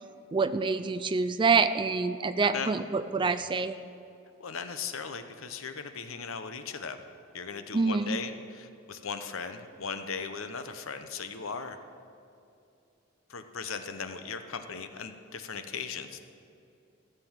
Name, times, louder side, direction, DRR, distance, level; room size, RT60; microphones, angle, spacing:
voice 1, 0.3-3.7 7.7-8.2, right 4 dB, 20° right, 12 dB, 0.3 m, -26 dB
voice 2, 4.4-7.0 7.3-11.8 13.3-16.2, left 5 dB, 65° left, 9 dB, 0.8 m, -38 dB
15.0 x 6.8 x 7.4 m, 2.6 s
head